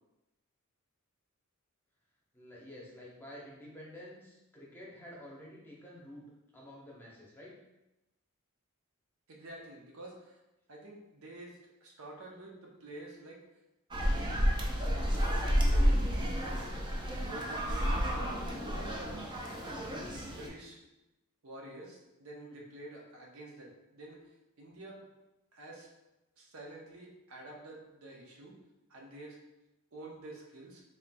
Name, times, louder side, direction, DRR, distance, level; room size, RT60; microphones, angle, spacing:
voice 1, 2.3-6.2 6.5-7.5 22.4-22.6, left 1 dB, 10° left, -5 dB, 0.8 m, -50 dB
voice 2, 9.3-10.4 10.7-13.4 14.0-14.6 14.9-16.7 17.2-18.4 18.8-19.4 20.3-20.8 21.4-24.3 24.6-25.1 25.5-25.9 26.4-28.6 28.9-29.4 29.9-30.8, right 1 dB, 70° right, -1 dB, 0.7 m, -49 dB
sound 1, 13.9-20.5, equal, 20° right, 0.5 m, -30 dB
4.3 x 3.7 x 2.2 m, 0.98 s
head